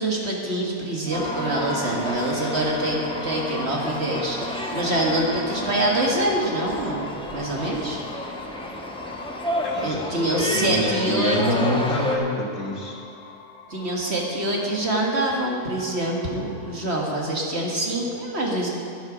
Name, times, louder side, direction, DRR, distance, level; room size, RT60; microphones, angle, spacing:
voice 1, 0.0-8.0 9.8-11.7 13.7-18.7, right 1 dB, 45° right, -1 dB, 1.8 m, -25 dB
Wind instrument woodwind instrument, 1.0-6.0, left 1 dB, 65° right, 3.8 m, -37 dB
sound 1, 1.1-12.2, equal, 5° left, 0.9 m, -32 dB
sound 2, 1.2-17.3, left 3 dB, 20° left, 1.4 m, -41 dB
voice 2, 9.6-13.0, left 1 dB, 55° left, -1 dB, 1.9 m, -26 dB
12.0 x 11.0 x 5.1 m, 2.8 s
omnidirectional pair, 1.6 m